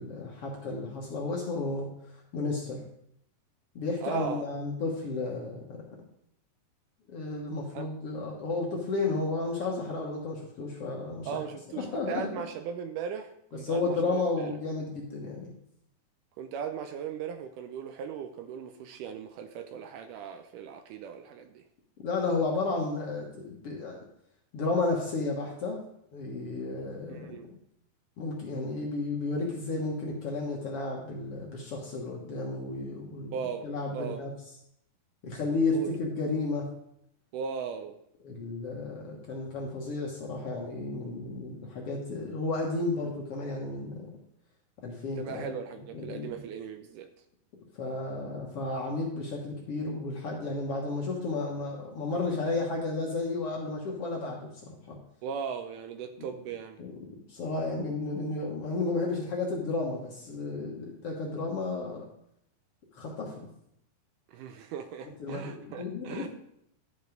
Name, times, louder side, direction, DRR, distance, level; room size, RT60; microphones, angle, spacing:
voice 1, 0.0-1.9 2.3-2.8 3.8-5.9 7.1-11.3 11.8-12.4 13.6-15.5 22.0-24.0 24.5-25.8 26.1-27.3 28.2-34.3 35.2-36.7 38.2-44.1 44.8-45.6 45.9-46.3 47.8-55.0 56.8-56.9 57.3-62.1 62.9-63.5 65.2-66.3, left 3 dB, 55° left, -2 dB, 1.8 m, -32 dB
voice 2, 4.0-4.5 7.7-7.9 11.3-14.6 16.4-21.6 27.1-27.5 33.3-34.3 35.7-35.9 37.3-38.0 45.2-47.1 55.2-56.8 64.3-66.3, right 7 dB, 80° right, 8 dB, 2.0 m, -38 dB
10.5 x 5.2 x 5.1 m, 0.74 s
omnidirectional pair, 3.9 m